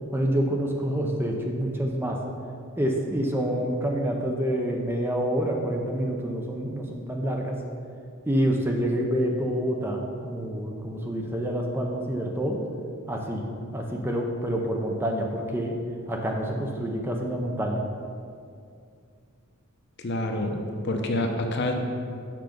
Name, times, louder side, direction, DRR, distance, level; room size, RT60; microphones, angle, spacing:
voice 1, 0.1-2.2 2.8-7.6 8.3-12.6 13.1-13.5 13.7-15.8 16.1-17.8, equal, 10° right, 1 dB, 0.5 m, -27 dB
voice 2, 20.0-21.7, left 1 dB, 55° left, 3 dB, 0.7 m, -27 dB
5.9 x 5.7 x 5.0 m, 2.3 s
head